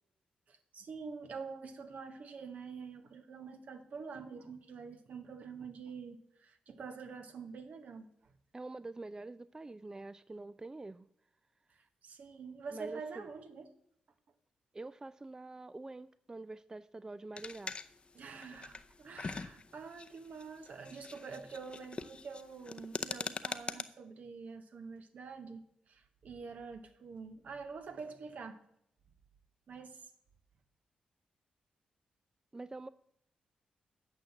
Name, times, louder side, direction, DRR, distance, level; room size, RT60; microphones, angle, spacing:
voice 1, 0.5-8.3 12.0-13.7 18.1-28.6 29.7-30.1, right 5 dB, 65° right, 1.1 m, -46 dB
voice 2, 8.5-11.1 12.7-13.3 14.7-17.8 32.5-32.9, right 2 dB, 25° right, 0.3 m, -46 dB
shaking screwbox, 17.4-23.8, left 4 dB, 40° left, 0.6 m, -43 dB
9.0 x 5.8 x 7.3 m
cardioid pair, 55°, 3 cm